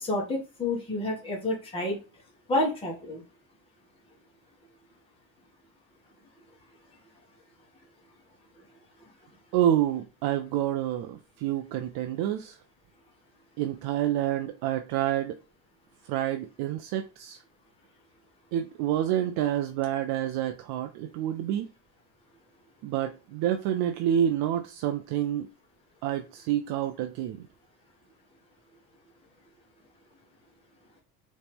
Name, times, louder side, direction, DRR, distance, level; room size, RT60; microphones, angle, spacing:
voice 1, 0.0-2.0 2.5-3.2, left 2 dB, 15° left, 1.7 m, -29 dB
voice 2, 9.5-12.6 13.6-15.4 16.1-17.4 18.5-21.7 22.8-25.5 26.0-27.5, right 11 dB, 65° right, 0.6 m, -28 dB
3.8 x 3.2 x 3.5 m
supercardioid pair, 105°, 41 cm